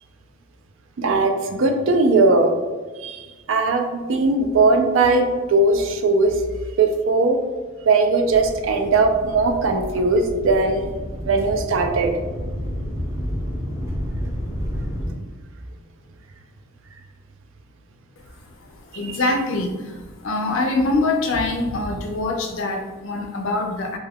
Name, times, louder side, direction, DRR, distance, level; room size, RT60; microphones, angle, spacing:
voice 1, 1.0-2.5 3.0-3.2 3.5-6.3 6.8-7.4 7.9-10.9 11.2-12.1 19.1-19.2, right 3 dB, 65° right, 5 dB, 0.4 m, -19 dB
sound 1, 8.3-15.1, equal, 15° right, 0.6 m, -30 dB
voice 2, 18.2-24.0, left 2 dB, 65° left, 3 dB, 0.4 m, -24 dB
2.7 x 2.3 x 3.4 m, 1.3 s
head